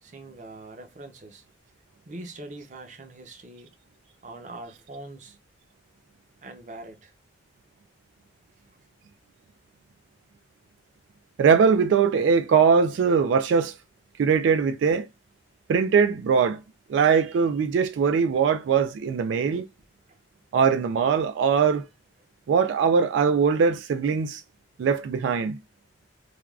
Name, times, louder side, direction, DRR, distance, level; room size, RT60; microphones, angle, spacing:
voice 1, 0.0-1.4 2.1-3.7 4.2-5.4 6.4-7.1 20.1-20.2 21.5-21.6, right 2 dB, 45° right, 0.6 m, -42 dB
voice 2, 11.4-13.7 14.2-15.1 15.7-16.6 16.9-19.7 20.5-21.9 22.5-24.4 24.8-25.6, right 6 dB, 90° right, 0.3 m, -21 dB
3.3 x 2.3 x 2.3 m
head